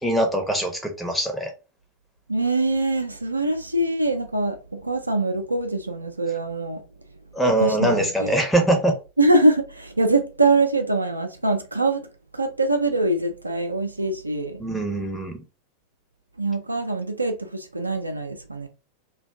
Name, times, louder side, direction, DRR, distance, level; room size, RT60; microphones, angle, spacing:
voice 1, 0.0-1.5 7.3-8.9 14.6-15.4, right 1 dB, ahead, 0.8 m, -22 dB
voice 2, 2.3-6.8 7.6-8.4 9.2-12.1 12.3-14.6 16.4-18.7, right 2 dB, 85° right, 0.4 m, -23 dB
2.5 x 2.2 x 3.5 m
figure-of-eight pair, 90°, 0 cm